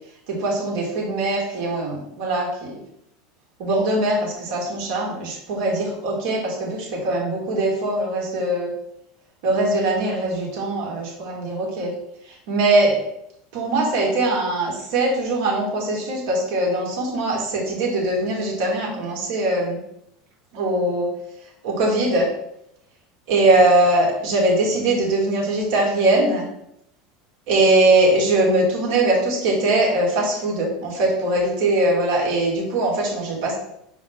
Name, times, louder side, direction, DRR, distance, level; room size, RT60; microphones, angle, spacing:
voice 1, 0.3-2.8 3.6-8.7 9.4-11.9 12.2-13.0 13.5-19.8 20.5-21.1 21.6-22.3 23.3-26.4 27.5-33.5, right 2 dB, 60° right, -2 dB, 2.2 m, -21 dB
5.7 x 4.6 x 3.7 m, 0.77 s
figure-of-eight pair, 75°, 0 cm